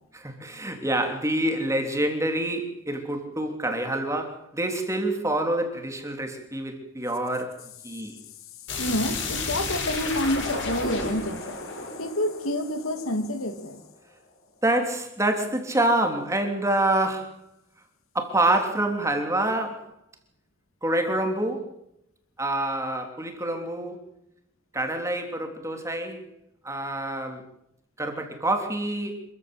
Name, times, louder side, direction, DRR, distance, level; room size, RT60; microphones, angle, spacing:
voice 1, 0.1-8.2 14.6-17.4 18.1-19.9 20.8-21.7 22.4-24.0 24.7-26.2 26.6-27.4 28.0-29.2, right 1 dB, 15° right, 3.4 m, -27 dB
sound 1, 8.7-13.4, left 3 dB, 60° left, 8.0 m, -32 dB
voice 2, 8.8-11.6 12.0-13.8, left 1 dB, 90° left, 3.0 m, -28 dB
26.5 x 15.0 x 8.0 m
head